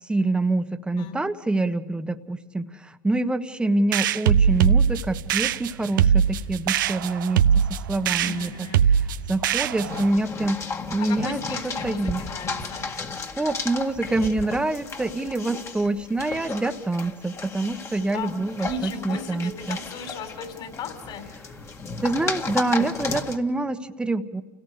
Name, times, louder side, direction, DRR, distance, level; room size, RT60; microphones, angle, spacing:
voice 1, 0.1-10.6 10.9-12.2 13.4-19.8 22.0-24.4, right 2 dB, 10° right, 8 dB, 1.3 m, -26 dB
sound 1, 3.9-10.1, right 8 dB, 85° right, 0.7 m, -21 dB
voice 2, 8.2-8.8 11.0-12.9 18.1-18.3 18.6-21.2, left 4 dB, 50° left, 6 dB, 4.3 m, -36 dB
sound 2, 9.9-23.4, left 4 dB, 25° left, 1.9 m, -34 dB
29.5 x 17.5 x 6.7 m, 1.2 s
hypercardioid pair, 95°, 10 cm